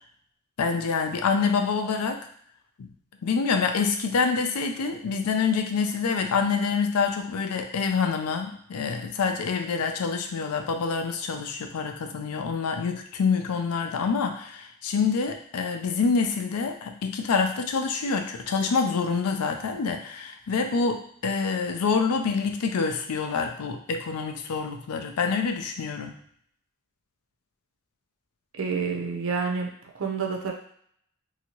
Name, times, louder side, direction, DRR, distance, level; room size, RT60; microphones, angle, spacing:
voice 1, 0.6-2.3 2.8-2.9 3.2-26.2, left 5 dB, 80° left, 5 dB, 0.4 m, -26 dB
voice 2, 28.6-30.5, right 5 dB, 60° right, 2 dB, 0.5 m, -29 dB
2.8 x 2.6 x 2.8 m, 0.65 s
head